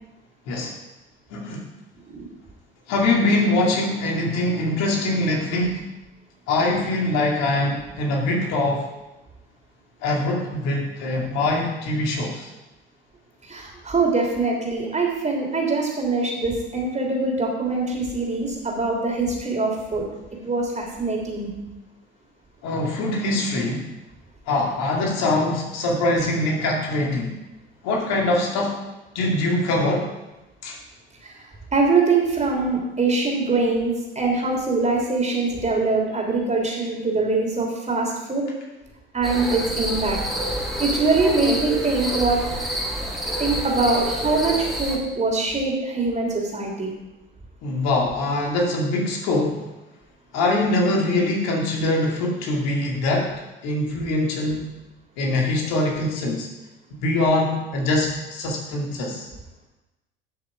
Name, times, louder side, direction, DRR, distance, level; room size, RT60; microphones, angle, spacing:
voice 1, 1.3-1.6 2.9-5.8 6.5-8.8 10.0-12.5 22.6-23.8 24.5-27.3 27.8-28.7 29.1-30.0 30.6-30.8 47.6-49.7 50.3-53.3 53.6-54.7 55.2-56.5 57.0-59.3, left 2 dB, 60° left, 0 dB, 2.3 m, -23 dB
voice 2, 13.5-20.1 20.3-21.5 31.2-31.3 31.7-38.4 39.1-40.2 40.8-42.4 43.4-46.9, right 3 dB, 25° right, 0 dB, 3.3 m, -23 dB
sound 1, 39.2-45.0, right 1 dB, ahead, 2.8 m, -28 dB
12.0 x 6.3 x 4.8 m, 1.0 s
figure-of-eight pair, 60°, 30 cm